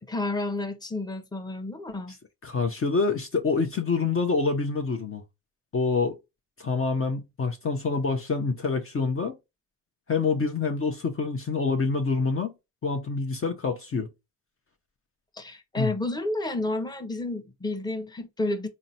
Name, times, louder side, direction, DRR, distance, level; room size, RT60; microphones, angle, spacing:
voice 1, 0.1-2.1 15.3-18.7, left 2 dB, 10° left, 0.9 m, -30 dB
voice 2, 2.4-5.2 5.7-6.2 6.6-9.4 10.1-12.5 12.8-14.1 15.8-15.9, left 4 dB, 35° left, 0.8 m, -26 dB
3.9 x 2.1 x 4.1 m
supercardioid pair, 65°, 36 cm